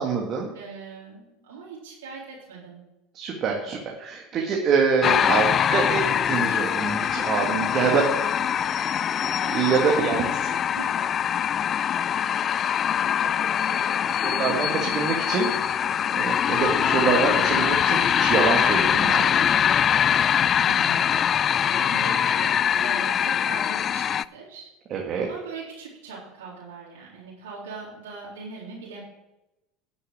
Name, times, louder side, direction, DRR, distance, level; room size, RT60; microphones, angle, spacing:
voice 1, 0.0-0.5 3.1-8.4 9.4-10.5 13.2-13.4 13.9-15.5 16.1-19.5 20.2-20.3 24.9-25.3, right 5 dB, 45° right, 0 dB, 1.9 m, -25 dB
voice 2, 0.5-2.8 8.0-8.6 9.9-11.0 12.2-12.3 20.6-21.1 21.6-24.7 25.3-29.0, right 4 dB, 85° right, -7 dB, 3.8 m, -41 dB
sound 1, 5.0-24.2, left 9 dB, 40° left, 0.3 m, -23 dB
11.5 x 6.9 x 6.4 m, 0.95 s
hypercardioid pair, 80°, 0 cm